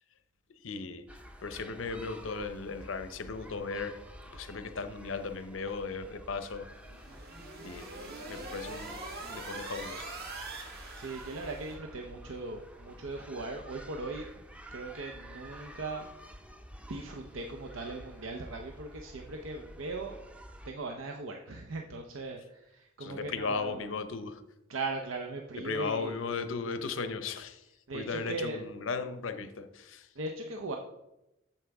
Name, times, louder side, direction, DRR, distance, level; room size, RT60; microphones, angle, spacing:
voice 1, 0.6-1.0 1.4-4.0 4.3-6.7 7.6-7.9 8.3-10.0 23.0-24.4 25.6-27.6 27.9-30.1, left 4 dB, 80° left, 10 dB, 0.7 m, -36 dB
sound 1, 1.1-20.7, equal, 5° right, 0.5 m, -50 dB
sound 2, 6.7-11.7, right 2 dB, 55° right, 1.5 m, -43 dB
voice 2, 10.9-14.3 14.7-16.1 16.9-20.2 20.6-23.9 24.7-26.2 27.9-28.6 30.2-30.8, right 2 dB, 80° right, 2 dB, 0.7 m, -39 dB
8.8 x 7.1 x 3.5 m, 0.91 s
head